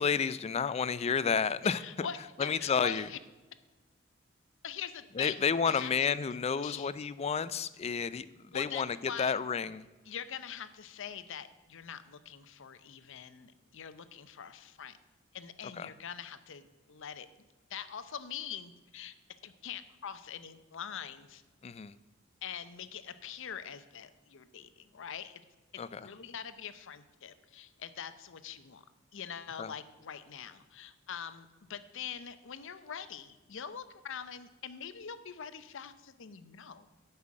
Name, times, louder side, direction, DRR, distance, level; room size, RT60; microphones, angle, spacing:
voice 1, 0.0-1.8 2.4-3.1 5.2-8.3 8.5-9.8 15.8-15.9 21.6-21.9 25.8-26.1 29.6-29.7, left 6 dB, 30° left, 16 dB, 0.3 m, -31 dB
voice 2, 1.8-3.2 4.6-5.9 6.6-6.9 8.5-9.4 10.1-15.0 15.3-17.3 17.7-19.1 19.4-21.4 22.4-25.4 25.7-28.8 29.1-36.9, left 8 dB, 65° left, 12 dB, 0.7 m, -43 dB
9.7 x 5.6 x 7.5 m, 1.2 s
head